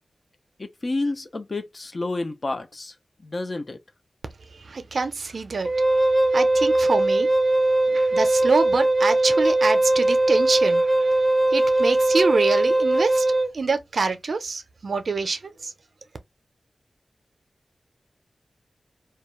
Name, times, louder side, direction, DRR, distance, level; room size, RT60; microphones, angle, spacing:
voice 1, 0.6-2.9 3.2-3.8, left 2 dB, 50° left, 0.5 m, -29 dB
voice 2, 4.4-15.7, right 4 dB, 75° right, 0.5 m, -26 dB
Wind instrument woodwind instrument, 5.6-13.5, right 2 dB, 20° right, 0.4 m, -20 dB
2.3 x 2.2 x 3.0 m
cardioid pair, 55°, 0 cm